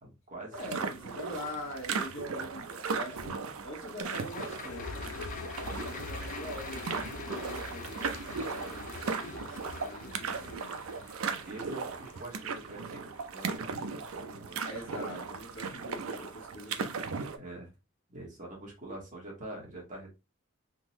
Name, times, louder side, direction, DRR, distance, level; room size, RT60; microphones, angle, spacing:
voice 1, 0.0-0.5 10.0-10.6 11.5-14.6 17.4-17.7 18.1-20.1, right 2 dB, 35° right, 1.5 m, -45 dB
voice 2, 0.5-5.1 5.6-10.7 14.6-17.0, equal, 60° left, 1.3 m, -44 dB
sound 1, 0.5-17.4, right 5 dB, 85° right, 0.5 m, -37 dB
sound 2, 4.0-14.5 14.9-15.0, left 5 dB, 40° left, 0.5 m, -48 dB
sound 3, 4.7-10.6, left 3 dB, 85° left, 0.5 m, -43 dB
3.7 x 2.6 x 2.8 m
head